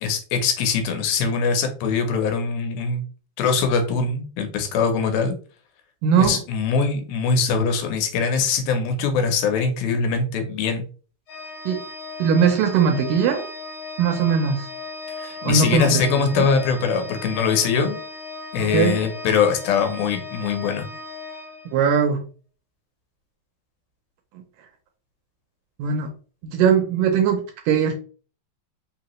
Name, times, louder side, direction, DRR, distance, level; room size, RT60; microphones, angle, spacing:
voice 1, 0.0-3.0 3.4-5.4 6.2-10.8 15.2-18.0 18.5-20.9, left 5 dB, 80° left, 2.6 m, -22 dB
voice 2, 6.0-6.4 11.7-11.8 12.2-13.5 14.0-14.7 15.4-16.0 16.4-16.5 18.6-19.0 21.7-22.3 24.3-24.4 25.8-26.1 26.4-27.9, right 6 dB, 75° right, 2.1 m, -20 dB
Organ, 11.3-22.1, left 3 dB, 50° left, 1.2 m, -36 dB
5.7 x 2.8 x 3.0 m
omnidirectional pair, 4.3 m